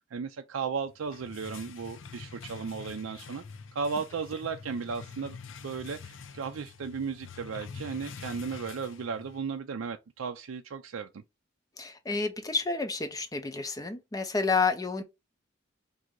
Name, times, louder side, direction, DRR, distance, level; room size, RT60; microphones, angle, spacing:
voice 1, 0.1-3.4 3.7-5.4 5.6-11.2, right 5 dB, 85° right, 0.4 m, -35 dB
sound 1, 0.9-9.5, left 5 dB, 70° left, 0.5 m, -46 dB
voice 2, 11.8-15.0, left 4 dB, 15° left, 0.4 m, -30 dB
3.7 x 2.7 x 4.6 m
head